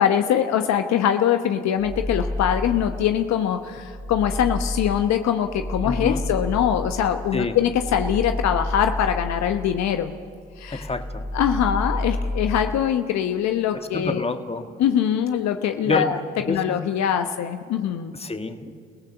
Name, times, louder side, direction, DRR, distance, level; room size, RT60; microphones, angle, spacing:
voice 1, 0.0-10.1 10.6-10.9 11.3-14.2 14.8-16.2 16.5-18.1, left 9 dB, 65° left, 7 dB, 1.1 m, -23 dB
sound 1, 1.7-3.2 3.6-10.1 10.4-12.7, left 1 dB, 90° left, 5.3 m, -30 dB
voice 2, 5.8-6.2 7.3-7.6 10.7-11.3 13.7-14.7 15.9-16.1 16.5-16.6 18.1-18.7, left 3 dB, 20° left, 7 dB, 1.8 m, -27 dB
29.5 x 17.0 x 7.0 m, 2.1 s
hypercardioid pair, 55°, 30 cm